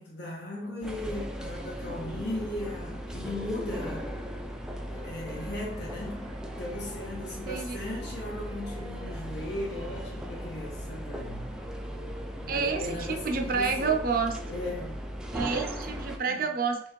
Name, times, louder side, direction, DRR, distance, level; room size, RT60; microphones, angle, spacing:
voice 1, 0.0-4.1 4.9-11.5 12.4-14.0 14.5-15.0 16.3-16.4, left 1 dB, 70° left, 1.5 m, -37 dB
sound 1, 0.8-16.2, equal, 5° right, 0.3 m, -38 dB
sound 2, 1.4-15.1, right 1 dB, 90° right, 0.8 m, -52 dB
Wind instrument woodwind instrument, 4.6-7.4 7.8-10.9, left 1 dB, 40° left, 1.6 m, -52 dB
voice 2, 7.5-7.8 12.5-14.4 15.3-16.8, right 5 dB, 55° right, 0.6 m, -29 dB
4.3 x 3.2 x 3.0 m
head